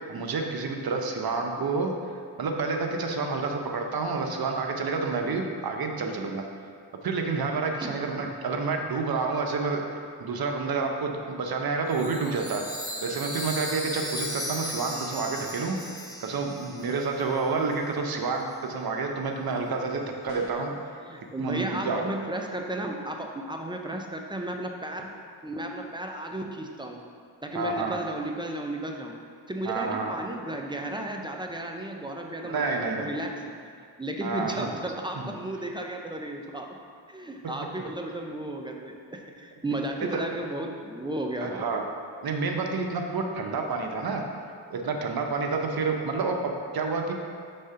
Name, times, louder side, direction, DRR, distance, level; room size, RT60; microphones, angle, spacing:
voice 1, 0.1-1.9 2.4-6.4 7.0-9.8 10.2-12.6 13.0-15.8 16.2-20.8 21.4-22.0 27.5-28.0 29.6-30.1 32.4-33.1 34.2-34.7 35.2-35.3 40.1-40.2 41.4-41.8 42.2-44.2 44.7-47.1, right 4 dB, 50° right, 3 dB, 0.8 m, -29 dB
voice 2, 1.6-1.9 7.8-8.3 21.0-25.1 25.4-27.0 27.4-29.1 29.5-32.7 33.0-33.6 34.0-36.8 37.1-41.5 43.5-43.7 45.2-45.3, right 1 dB, 10° right, 2 dB, 0.6 m, -34 dB
Chime, 11.9-17.5, equal, 10° left, 1.1 m, -37 dB
sound 1, 20.3-20.8, left 5 dB, 90° left, 0.7 m, -43 dB
5.4 x 3.7 x 5.5 m, 2.3 s
cardioid pair, 75°, 47 cm